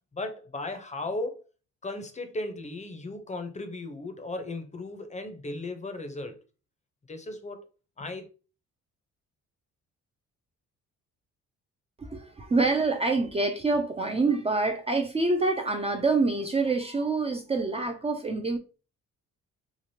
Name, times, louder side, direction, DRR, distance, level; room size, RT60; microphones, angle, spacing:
voice 1, 0.1-1.5 1.8-6.4 7.1-7.6 8.0-8.3, left 2 dB, 25° left, 0.6 m, -36 dB
voice 2, 12.0-18.6, right 3 dB, 20° right, 0.4 m, -26 dB
3.1 x 2.4 x 2.7 m
cardioid pair, 90°, 30 cm